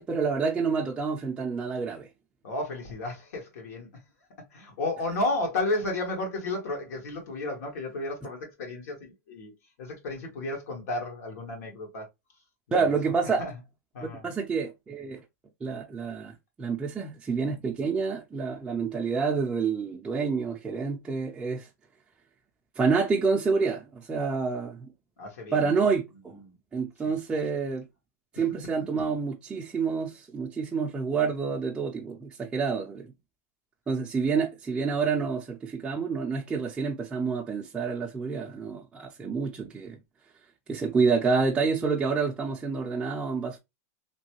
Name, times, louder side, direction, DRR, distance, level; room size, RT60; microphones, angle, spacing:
voice 1, 0.0-2.1 12.7-13.4 14.0-15.2 15.6-21.7 22.8-24.9 25.5-26.4 26.7-27.9 28.3-33.1 33.9-40.0 40.7-43.6, right 5 dB, 10° right, 0.4 m, -28 dB
voice 2, 2.4-3.9 4.5-9.5 9.8-12.1 12.7-13.5 13.9-14.3 25.2-25.7 26.4-26.5 27.0-27.1, left 2 dB, 75° left, 1.6 m, -33 dB
3.1 x 2.2 x 3.0 m
supercardioid pair, 145°, 8 cm